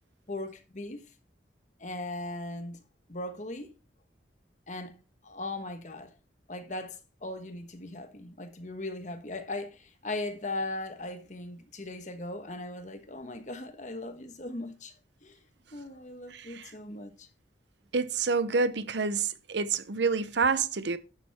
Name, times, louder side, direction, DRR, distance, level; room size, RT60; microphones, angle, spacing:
voice 1, 0.3-1.0 1.8-2.8 3.1-3.7 4.7-5.0 5.2-6.1 6.5-14.9 15.2-15.4 15.7-17.3, left 2 dB, 40° left, 1.3 m, -38 dB
voice 2, 16.3-16.7 17.9-21.0, right 4 dB, 70° right, 0.7 m, -28 dB
11.0 x 7.5 x 3.5 m
head